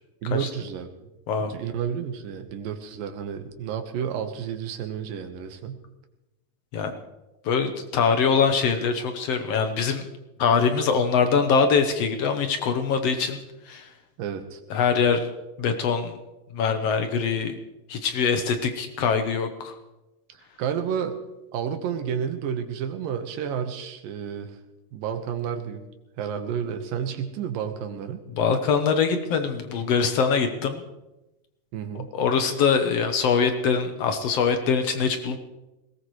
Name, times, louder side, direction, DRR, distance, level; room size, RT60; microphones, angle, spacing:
voice 1, 0.2-0.9 1.5-5.8 14.2-14.6 20.3-21.2 21.5-24.6 24.9-25.8 26.2-28.2 31.7-32.1, right 8 dB, 90° right, 6 dB, 2.9 m, -31 dB
voice 2, 7.4-10.0 10.4-13.4 13.7-13.9 14.7-15.3 15.6-16.1 16.5-17.6 17.9-19.7 28.3-30.8 32.1-35.4, left 6 dB, 70° left, 7 dB, 1.6 m, -23 dB
21.0 x 18.0 x 3.2 m, 1.0 s
omnidirectional pair, 3.9 m